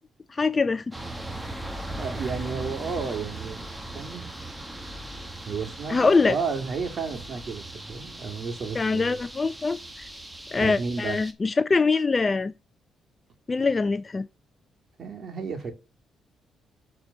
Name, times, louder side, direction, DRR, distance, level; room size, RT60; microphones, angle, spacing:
voice 1, 0.3-0.9 5.9-6.3 8.8-9.8 10.5-12.5 13.5-14.3, left 4 dB, 30° left, 0.5 m, -23 dB
sound 1, 0.9-11.3, right 2 dB, 15° right, 1.6 m, -38 dB
voice 2, 2.0-3.7 3.9-4.2 5.4-9.2 10.6-11.2 15.0-15.7, right 5 dB, 55° right, 2.4 m, -32 dB
7.8 x 4.2 x 5.6 m
cardioid pair, 90°, 0 cm